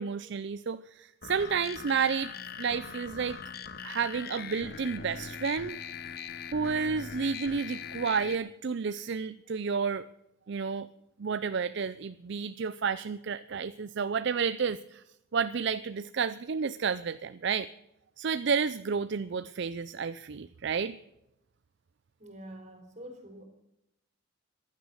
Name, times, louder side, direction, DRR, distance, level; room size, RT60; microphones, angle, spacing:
voice 1, 0.0-2.3 2.6-3.4 3.8-5.8 6.5-10.1 10.5-10.9 11.2-15.0 15.3-17.7 18.2-21.0, right 6 dB, 55° right, 14 dB, 0.5 m, -31 dB
sound 1, 1.2-8.4, left 6 dB, 45° left, 1.0 m, -41 dB
voice 2, 22.2-23.4, right 1 dB, 35° right, 5 dB, 3.5 m, -46 dB
15.5 x 11.5 x 6.4 m, 0.84 s
head